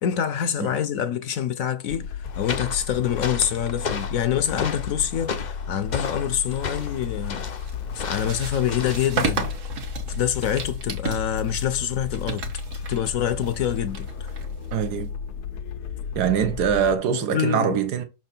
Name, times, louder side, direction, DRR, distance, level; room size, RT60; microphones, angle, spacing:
voice 1, 0.0-7.5 7.9-9.5 10.1-12.4 12.9-14.3 17.3-17.8, left 9 dB, 65° left, 1.0 m, -26 dB
sound 1, 1.9-17.0, left 6 dB, 85° left, 1.3 m, -34 dB
sound 2, 2.3-9.2, left 5 dB, 50° left, 0.5 m, -34 dB
sound 3, 6.4-15.1, right 4 dB, 55° right, 1.5 m, -34 dB
voice 2, 14.7-15.1 16.1-18.0, right 8 dB, 80° right, 1.5 m, -23 dB
6.1 x 4.4 x 4.2 m
omnidirectional pair, 1.7 m